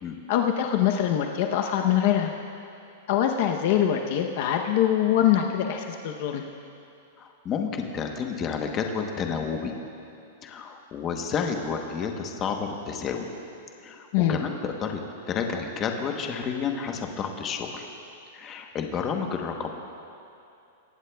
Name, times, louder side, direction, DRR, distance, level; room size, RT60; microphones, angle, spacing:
voice 1, 0.3-2.3 3.1-6.4 14.1-14.4, left 10 dB, 45° left, 3 dB, 0.7 m, -23 dB
voice 2, 7.2-9.7 10.4-13.3 13.8-15.0 15.3-17.9 18.3-19.7, left 6 dB, 20° left, 3 dB, 1.0 m, -30 dB
23.5 x 17.5 x 2.3 m, 2.6 s
supercardioid pair, 175°, 0 cm